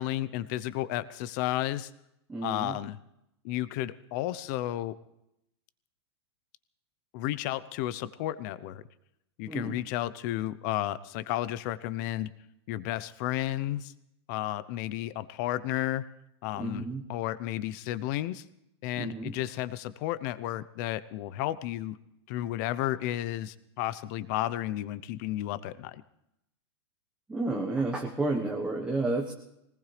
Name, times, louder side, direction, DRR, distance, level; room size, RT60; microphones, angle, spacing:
voice 1, 0.0-1.9 2.4-3.0 3.4-5.0 7.1-8.8 9.4-12.3 12.7-13.9 14.3-16.1 16.4-18.4 18.8-22.0 22.3-26.0, left 14 dB, 40° left, 16 dB, 0.7 m, -32 dB
voice 2, 2.3-2.7 9.5-9.8 16.6-17.0 19.0-19.3 27.3-29.3, right 2 dB, 5° right, 0 dB, 1.2 m, -31 dB
21.0 x 19.5 x 3.3 m, 0.81 s
supercardioid pair, 155°, 15 cm